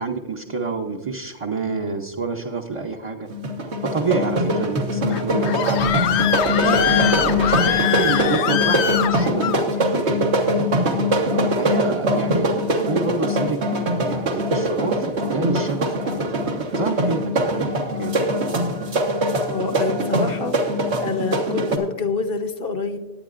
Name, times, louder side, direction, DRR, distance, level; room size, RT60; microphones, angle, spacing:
voice 1, 0.0-3.3 3.9-5.9 6.3-10.3 11.1-13.6 14.0-17.7 18.0-18.4, right 4 dB, 35° right, 1 dB, 0.6 m, -28 dB
sound 1, 3.3-21.8, equal, 85° right, 1.6 m, -22 dB
Screaming, 5.1-9.6, left 10 dB, 80° left, 0.9 m, -23 dB
voice 2, 19.5-20.7 21.0-23.0, left 4 dB, 60° left, 7 dB, 1.1 m, -26 dB
19.0 x 9.3 x 2.5 m, 1.2 s
omnidirectional pair, 1.1 m